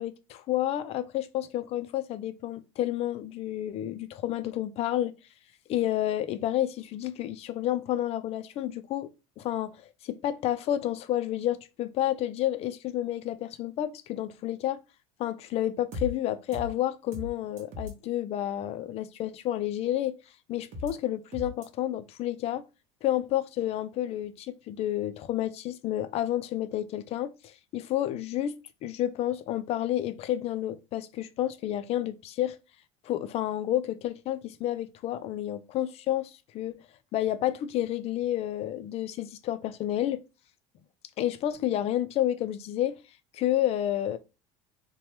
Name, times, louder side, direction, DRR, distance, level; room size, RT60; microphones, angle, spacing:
voice 1, 0.0-5.1 5.7-14.8 15.2-20.1 20.5-22.6 23.0-28.6 28.8-32.6 33.0-36.8 37.1-40.2 41.2-43.0 43.3-44.2, left 12 dB, 45° left, 0.4 m, -30 dB
sound 1, 15.9-16.1 16.5-16.7 17.1-17.3 17.6-17.9 20.7-20.9 21.3-21.7, left 3 dB, 50° right, 0.9 m, -36 dB
2.9 x 2.2 x 3.2 m
supercardioid pair, 115°, 15 cm